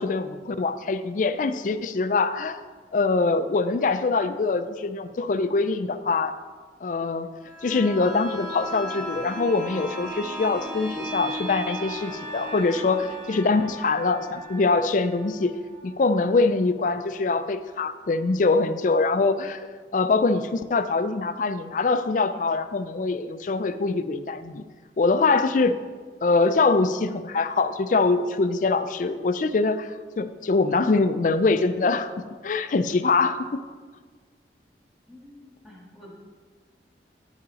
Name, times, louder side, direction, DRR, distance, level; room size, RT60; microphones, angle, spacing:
voice 1, 0.0-2.6 2.9-6.4 6.8-7.3 7.6-15.5 15.8-19.6 19.9-24.6 25.0-25.8 26.2-32.1 32.4-33.6, left 3 dB, 45° left, 11 dB, 0.4 m, -23 dB
sound 1, 7.4-17.0 17.4-17.5, right 1 dB, 25° right, 2.1 m, -37 dB
voice 2, 12.7-13.1 35.1-36.1, left 1 dB, ahead, -5 dB, 1.6 m, -48 dB
9.9 x 5.5 x 4.0 m, 1.5 s
head